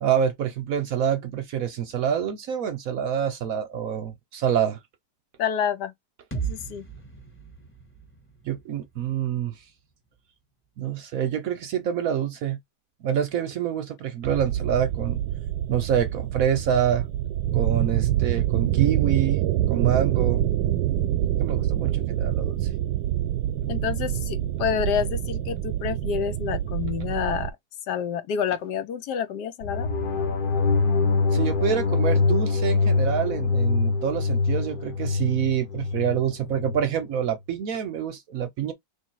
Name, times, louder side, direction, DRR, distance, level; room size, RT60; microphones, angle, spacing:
voice 1, 0.0-4.8 8.4-9.6 10.8-12.6 13.0-15.2 15.7-17.1 17.5-20.4 21.4-22.6 31.3-38.7, right 9 dB, 65° right, 0.9 m, -26 dB
voice 2, 5.4-5.9 6.3-6.8 23.7-27.5 27.9-29.9, left 8 dB, 75° left, 1.2 m, -28 dB
sound 1, 6.3-10.2, right 6 dB, 10° left, 1.0 m, -38 dB
sound 2, 14.2-27.5, right 12 dB, 85° right, 1.2 m, -26 dB
sound 3, 29.6-36.9, left 4 dB, 40° left, 0.9 m, -24 dB
3.1 x 2.7 x 4.5 m
omnidirectional pair, 1.9 m